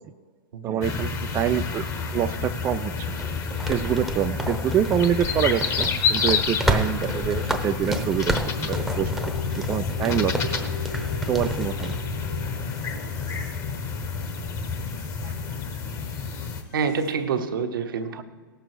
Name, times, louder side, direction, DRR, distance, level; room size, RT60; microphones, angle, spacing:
voice 1, 0.6-3.1 3.7-10.7 11.3-12.0 15.2-15.6 18.1-18.2, right 9 dB, 20° right, 8 dB, 0.4 m, -26 dB
sound 1, 0.8-16.6, left 5 dB, 25° left, 1.1 m, -29 dB
sound 2, 3.2-12.0, right 1 dB, ahead, 0.9 m, -31 dB
sound 3, 8.4-17.1, left 5 dB, 45° left, 1.8 m, -38 dB
voice 2, 16.7-18.2, right 6 dB, 70° right, 6 dB, 1.1 m, -27 dB
17.5 x 6.9 x 4.8 m, 1.5 s
hypercardioid pair, 110°, 12 cm